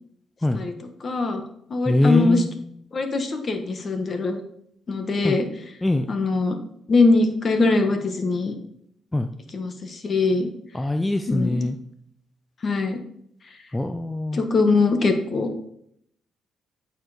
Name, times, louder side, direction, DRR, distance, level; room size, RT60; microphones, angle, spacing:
voice 1, 1.0-1.4 1.7-2.4 2.9-4.4 4.9-5.4 6.1-6.6 6.9-8.5 9.5-10.5 11.3-11.6 12.6-13.0 14.3-15.6, left 3 dB, 40° left, 6 dB, 1.3 m, -22 dB
voice 2, 1.9-2.5 5.2-5.4 5.8-6.1 9.1-9.3 10.7-11.8 13.7-14.4, left 1 dB, 10° left, 7 dB, 0.5 m, -22 dB
8.3 x 4.7 x 5.0 m, 0.71 s
cardioid pair, 90°, 0 cm